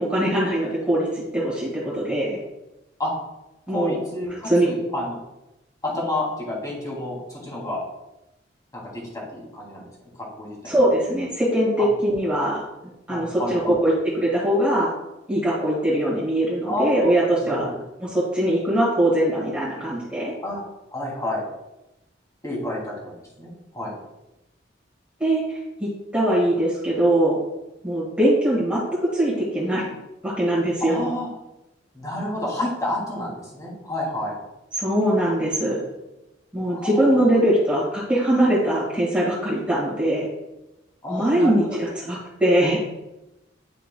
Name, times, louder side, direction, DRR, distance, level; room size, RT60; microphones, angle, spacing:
voice 1, 0.0-2.4 3.7-3.9 4.4-4.7 10.6-12.6 13.1-14.9 15.3-17.7 18.0-20.3 25.2-27.4 27.8-28.8 29.1-29.8 30.2-31.1 34.7-35.8 36.5-40.3 41.1-42.8, right 1 dB, 5° right, -7 dB, 1.6 m, -21 dB
voice 2, 3.7-5.2 5.8-7.8 8.7-9.8 10.4-10.7 11.8-11.9 13.1-13.8 16.7-17.0 17.4-17.8 20.4-20.6 20.9-21.4 22.4-23.9 30.8-31.3 31.9-34.3 36.7-37.2 41.0-41.8, left 1 dB, 20° left, -4 dB, 2.1 m, -30 dB
9.7 x 4.5 x 2.2 m, 0.96 s
head